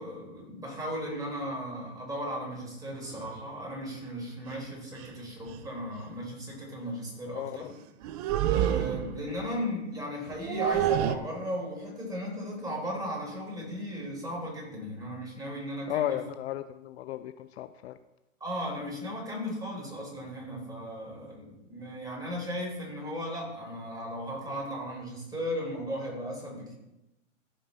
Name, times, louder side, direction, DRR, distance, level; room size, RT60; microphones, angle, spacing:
voice 1, 0.0-7.7 8.5-16.2 18.4-26.7, equal, 10° right, -3 dB, 4.1 m, -36 dB
sound 1, 3.1-3.3 4.5-4.6 5.0-5.1 5.5-5.7 8.0-9.3 10.2-11.2, right 10 dB, 30° right, 0.5 m, -28 dB
voice 2, 7.3-7.7 8.9-9.1 15.9-18.0, left 12 dB, 55° left, 11 dB, 0.6 m, -34 dB
15.5 x 5.2 x 4.0 m, 0.93 s
hypercardioid pair, 125°, 39 cm